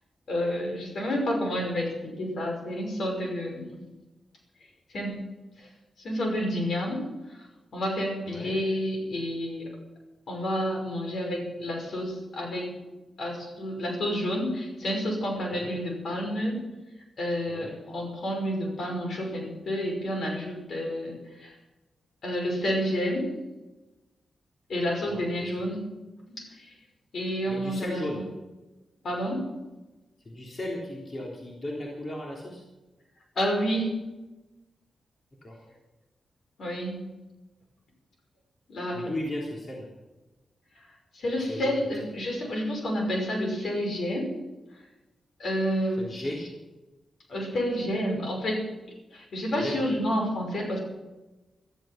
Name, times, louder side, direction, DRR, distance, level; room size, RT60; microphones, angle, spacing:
voice 1, 0.3-3.8 4.9-5.3 5.6-5.7 6.0-7.4 7.7-9.7 10.3-12.7 13.2-16.7 17.2-21.6 22.2-23.3 24.7-25.8 26.3-26.7 27.1-28.3 29.0-29.5 33.4-34.0 36.6-37.1 38.7-39.1 40.7-40.9 41.1-44.4 44.7-44.8 45.4-46.2 47.3-48.6 49.1-50.8, equal, 70° left, 1 dB, 5.6 m, -30 dB
voice 2, 27.5-28.2 30.3-32.6 35.4-35.5 38.9-39.9 41.5-41.7 46.0-46.4 49.6-49.9, left 1 dB, 45° left, -3 dB, 3.5 m, -35 dB
16.0 x 13.5 x 6.0 m, 1.1 s
cardioid pair, 70°, 0 cm